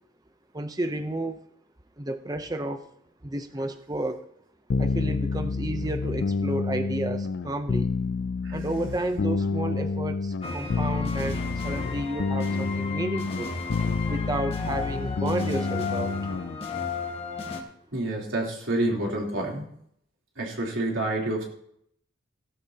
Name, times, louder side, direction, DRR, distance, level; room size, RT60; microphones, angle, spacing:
voice 1, 0.5-1.4 2.0-2.8 3.2-4.2 4.8-7.9 8.5-13.6 14.1-16.2, right 1 dB, 20° right, 7 dB, 0.7 m, -31 dB
sound 1, 4.7-16.6, left 4 dB, 60° left, 0.4 m, -29 dB
sound 2, 10.4-17.6, left 4 dB, 30° left, 1.7 m, -34 dB
voice 2, 17.9-19.7 20.4-21.4, right 1 dB, 70° right, -2 dB, 3.6 m, -28 dB
17.5 x 12.5 x 2.9 m, 0.70 s
head